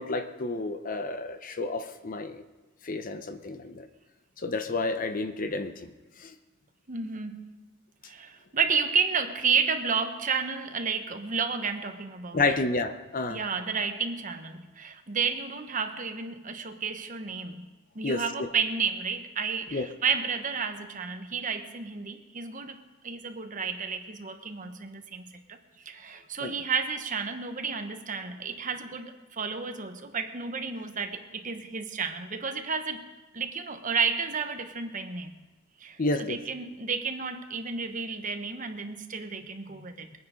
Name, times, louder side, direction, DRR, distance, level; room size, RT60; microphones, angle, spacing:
voice 1, 0.0-2.4 2.8-3.9 4.4-5.9 6.2-6.3 12.3-13.4 18.0-18.5 19.7-19.9 26.4-26.5 36.0-36.4, left 3 dB, 40° left, 8 dB, 0.8 m, -30 dB
voice 2, 6.9-7.7 8.1-12.4 13.3-17.7 17.9-22.8 23.0-25.6 25.8-33.0 33.3-35.3 35.8-40.1, right 5 dB, 40° right, 6 dB, 1.1 m, -31 dB
22.0 x 9.5 x 5.1 m, 1.2 s
head